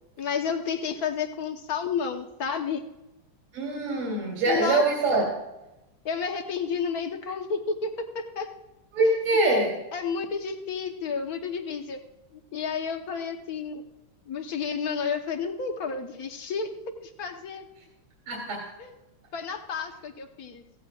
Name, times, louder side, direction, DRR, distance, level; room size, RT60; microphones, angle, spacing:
voice 1, 0.2-2.8 4.4-4.8 6.0-8.5 9.4-12.0 12.3-13.8 14.3-16.7 17.0-17.7 18.8-18.9 19.3-20.6, left 6 dB, 50° left, 5 dB, 1.3 m, -31 dB
voice 2, 3.5-5.2 8.9-9.7 18.3-18.6, right 2 dB, 70° right, -3 dB, 3.4 m, -24 dB
16.5 x 16.0 x 2.4 m, 0.97 s
omnidirectional pair, 2.3 m